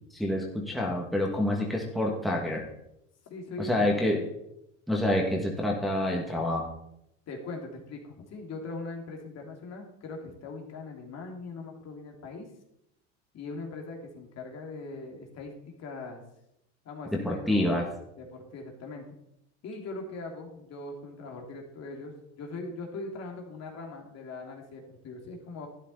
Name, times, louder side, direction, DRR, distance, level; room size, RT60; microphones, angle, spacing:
voice 1, 0.1-2.6 3.6-4.2 4.9-6.7 17.2-17.9, left 1 dB, ahead, -2 dB, 2.2 m, -27 dB
voice 2, 3.3-4.0 7.3-12.5 13.3-16.2 16.8-17.8 18.2-19.1 19.6-25.7, left 3 dB, 45° left, 1 dB, 2.8 m, -40 dB
12.0 x 10.0 x 4.2 m, 0.80 s
supercardioid pair, 105°, 36 cm